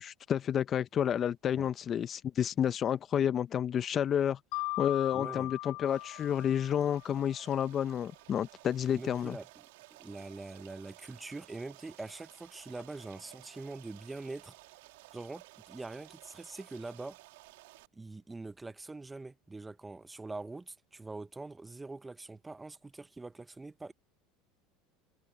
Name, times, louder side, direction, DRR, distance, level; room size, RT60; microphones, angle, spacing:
voice 1, 0.0-4.4 4.8-9.4, left 9 dB, 40° left, 0.8 m, -30 dB
Mallet percussion, 4.5-7.3, left 25 dB, 70° left, 0.5 m, -39 dB
voice 2, 5.1-5.5 8.9-9.7 10.0-14.5 15.1-17.2 17.9-23.9, right 3 dB, 15° right, 1.2 m, -44 dB
Stream, 5.9-17.9, right 21 dB, 80° right, 3.7 m, -56 dB
supercardioid pair, 100°, 0 cm